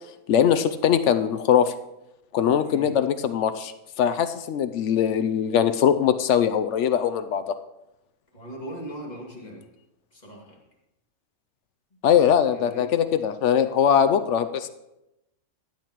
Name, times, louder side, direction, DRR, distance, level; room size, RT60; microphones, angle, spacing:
voice 1, 0.3-1.7 2.3-3.7 4.0-7.5 12.0-14.7, left 8 dB, 65° left, 10 dB, 0.7 m, -21 dB
voice 2, 2.6-3.0 8.3-9.7 10.1-10.6 11.9-12.0 12.5-12.9, equal, 30° left, -2 dB, 2.2 m, -39 dB
15.5 x 8.9 x 3.0 m, 0.92 s
omnidirectional pair, 1.6 m